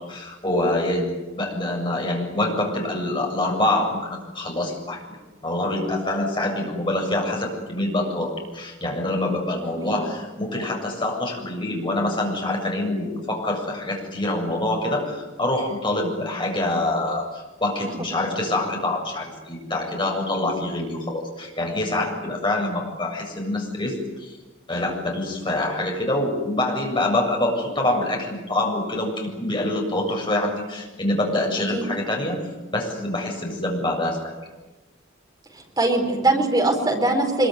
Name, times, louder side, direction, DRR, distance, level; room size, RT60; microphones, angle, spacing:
voice 1, 0.0-5.0 5.4-24.4 24.7-32.4 32.7-34.3, left 1 dB, 25° left, 0 dB, 7.5 m, -25 dB
voice 2, 35.5-37.5, right 2 dB, 20° right, 2 dB, 4.5 m, -22 dB
25.0 x 23.5 x 9.6 m, 1.2 s
head